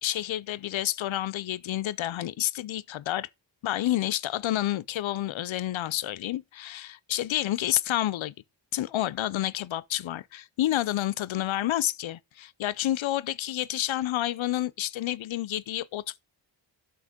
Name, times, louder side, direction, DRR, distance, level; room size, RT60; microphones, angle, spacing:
voice 1, 0.0-3.3 3.6-8.3 8.7-16.2, left 13 dB, 90° left, 0.6 m, -29 dB
8.2 x 6.0 x 5.0 m
wide cardioid pair, 115°, 45 cm